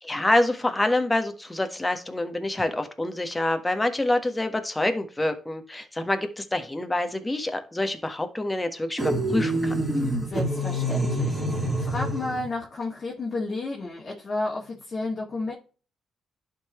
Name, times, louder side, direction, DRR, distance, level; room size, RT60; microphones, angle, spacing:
voice 1, 0.0-9.7, left 1 dB, 20° left, 7 dB, 1.4 m, -26 dB
sound 1, 9.0-12.5, right 1 dB, 10° right, 3.2 m, -26 dB
voice 2, 10.0-15.5, left 2 dB, 45° left, -3 dB, 1.9 m, -32 dB
11.5 x 4.0 x 3.1 m, 0.37 s
supercardioid pair, 55°, 0 cm